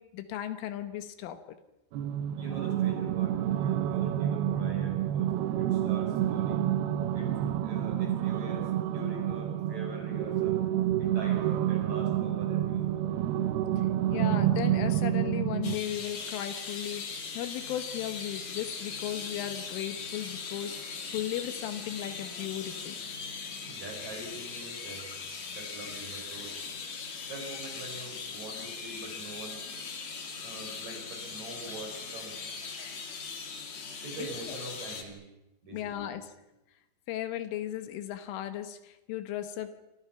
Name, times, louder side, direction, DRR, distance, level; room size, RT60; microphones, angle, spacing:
voice 1, 0.0-1.6 13.8-13.9 14.1-23.0 34.5-34.6 35.7-36.3 37.1-39.8, left 12 dB, 75° left, 10 dB, 3.7 m, -36 dB
sound 1, 1.9-15.8, right 12 dB, 80° right, 2.3 m, -29 dB
voice 2, 2.4-6.6 7.1-7.4 7.6-10.7 11.0-13.1 23.6-25.1 25.5-26.6 27.3-29.6 30.4-32.4 34.0-35.3 35.6-36.1, right 2 dB, 35° right, 2 dB, 6.3 m, -43 dB
sound 2, 15.6-35.0, left 5 dB, 40° left, 3.1 m, -40 dB
27.5 x 25.5 x 5.8 m, 0.93 s
omnidirectional pair, 5.8 m